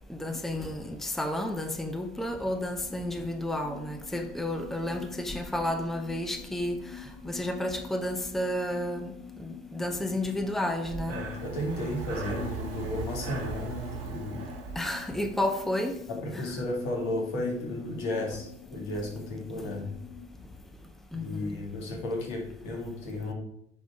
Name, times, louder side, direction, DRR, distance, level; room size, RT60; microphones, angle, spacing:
voice 1, 0.1-6.8 7.2-9.1 9.4-11.2 14.8-16.0 16.3-16.5 21.1-21.6, left 1 dB, ahead, 0.8 m, -31 dB
sound 1, 2.8-20.3, left 8 dB, 50° left, 1.5 m, -47 dB
Breathing, 10.7-15.7, right 6 dB, 75° right, 1.5 m, -39 dB
voice 2, 11.1-14.5 16.1-19.9 21.1-23.3, left 1 dB, 70° left, 2.2 m, -33 dB
9.1 x 3.7 x 4.8 m
figure-of-eight pair, 50°, 29 cm